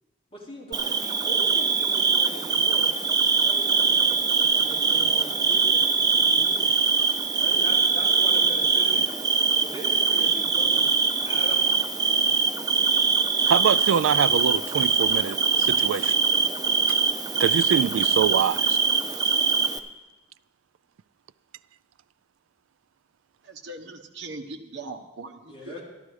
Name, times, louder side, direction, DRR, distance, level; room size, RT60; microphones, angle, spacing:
voice 1, 0.3-2.9 3.3-6.7 7.4-9.0 9.6-10.9 11.2-11.6 25.5-25.8, equal, 30° left, 3.7 m, -40 dB
Bird / Cricket, 0.7-19.8, right 5 dB, 20° right, 0.5 m, -22 dB
voice 2, 13.5-16.2 16.9-17.0 17.4-18.8, right 7 dB, 80° right, 0.3 m, -24 dB
voice 3, 23.4-25.7, right 3 dB, 60° right, 1.1 m, -40 dB
13.0 x 12.0 x 4.9 m
head